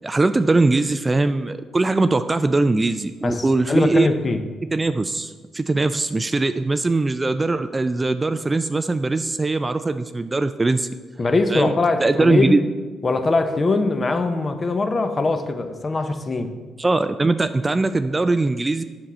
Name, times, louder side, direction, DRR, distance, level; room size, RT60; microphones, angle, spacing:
voice 1, 0.0-4.1 4.7-10.9 11.5-11.7 12.0-12.6 16.8-18.8, right 3 dB, 20° right, 11 dB, 0.3 m, -21 dB
voice 2, 3.2-4.4 11.2-12.6 13.0-16.5, left 3 dB, 30° left, 8 dB, 0.7 m, -22 dB
7.8 x 6.2 x 4.2 m, 1.4 s
cardioid pair, 90°, 0 cm